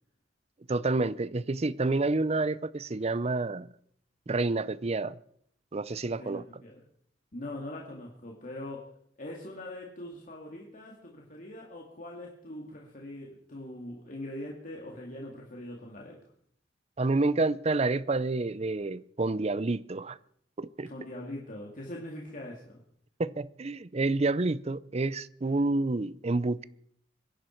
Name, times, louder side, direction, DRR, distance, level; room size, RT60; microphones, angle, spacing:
voice 1, 0.7-3.7 4.3-5.2 5.7-6.4 17.0-20.2 20.6-20.9 23.2-26.6, right 3 dB, 35° right, 0.6 m, -29 dB
voice 2, 6.2-6.8 7.3-16.2 20.9-22.8, left 1 dB, 45° left, 2.3 m, -42 dB
25.0 x 11.5 x 4.5 m
head